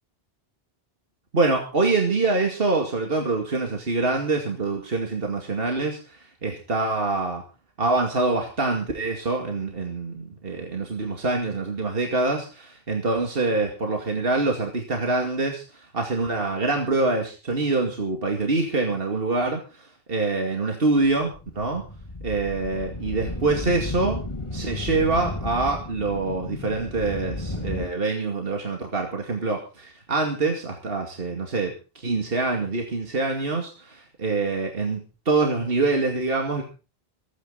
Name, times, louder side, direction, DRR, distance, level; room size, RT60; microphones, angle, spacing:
voice 1, 1.3-7.4 7.8-21.8 22.2-24.2 24.5-35.0 35.3-36.6, right 3 dB, 65° right, 2 dB, 2.6 m, -25 dB
sound 1, 21.2-27.9, left 2 dB, 30° left, 1.9 m, -33 dB
26.0 x 9.6 x 4.0 m, 0.33 s
omnidirectional pair, 1.0 m